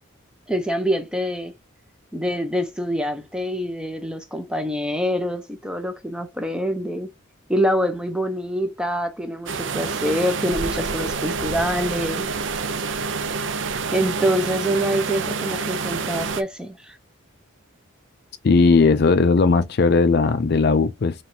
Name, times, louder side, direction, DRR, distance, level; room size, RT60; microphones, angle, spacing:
voice 1, 0.5-1.5 2.1-7.1 7.5-12.3 13.9-17.0, equal, 5° right, 0.6 m, -25 dB
sound 1, 9.5-16.4, right 4 dB, 60° right, 0.6 m, -27 dB
voice 2, 18.4-21.1, left 4 dB, 50° left, 0.4 m, -17 dB
4.1 x 3.1 x 2.7 m
head